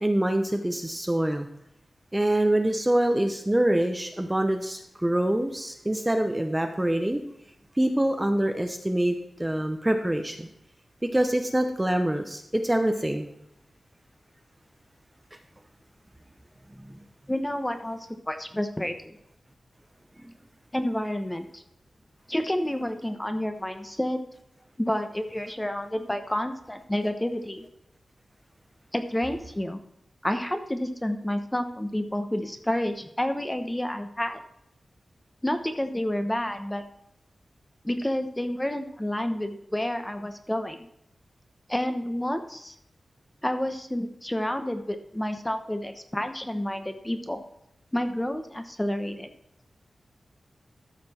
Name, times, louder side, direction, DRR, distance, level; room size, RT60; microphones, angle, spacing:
voice 1, 0.0-1.5 2.1-7.2 7.8-10.5 11.0-13.3 16.8-17.0 20.2-20.3, right 1 dB, 15° right, 6 dB, 0.8 m, -25 dB
voice 2, 17.3-19.2 20.7-21.6 22.3-24.2 24.8-27.7 28.9-29.8 30.2-34.4 35.4-36.8 37.8-40.8 41.7-42.7 43.4-47.4 47.9-49.3, left 1 dB, 10° left, 7 dB, 1.0 m, -29 dB
13.5 x 6.0 x 4.3 m, 0.78 s
wide cardioid pair, 120°, 0 cm